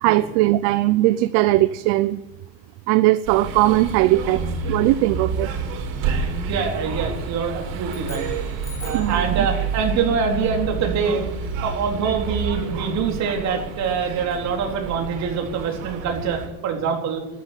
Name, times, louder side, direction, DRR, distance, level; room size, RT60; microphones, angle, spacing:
voice 1, 0.0-2.2 2.9-5.5 8.9-9.5, right 16 dB, 60° right, 15 dB, 0.7 m, -19 dB
sound 1, 3.2-16.5, right 5 dB, 80° right, 5.0 m, -29 dB
voice 2, 6.5-8.3 8.8-11.2 11.6-17.2, right 6 dB, 40° right, 2 dB, 3.9 m, -24 dB
sound 2, 7.8-9.2, left 4 dB, 5° left, 3.1 m, -42 dB
13.5 x 11.0 x 9.0 m, 1.0 s
cardioid pair, 160°, 41 cm